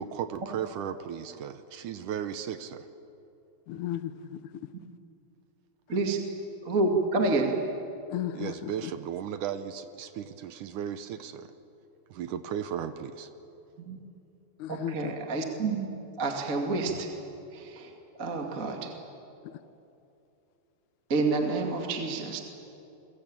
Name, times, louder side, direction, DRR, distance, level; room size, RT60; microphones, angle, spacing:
voice 1, 0.0-2.9 8.3-11.5 12.1-13.3, right 9 dB, 75° right, 10 dB, 1.9 m, -35 dB
voice 2, 3.7-4.5 8.1-8.9 14.6-15.1 19.4-19.6, left 12 dB, 75° left, 12 dB, 1.8 m, -35 dB
voice 3, 5.9-6.2 6.6-7.7 13.8-14.0 14.7-15.9 16.2-17.1 17.5-17.9 18.2-18.9 21.1-22.4, right 3 dB, 30° right, 2 dB, 1.7 m, -28 dB
29.0 x 22.5 x 8.9 m, 2.8 s
omnidirectional pair, 4.6 m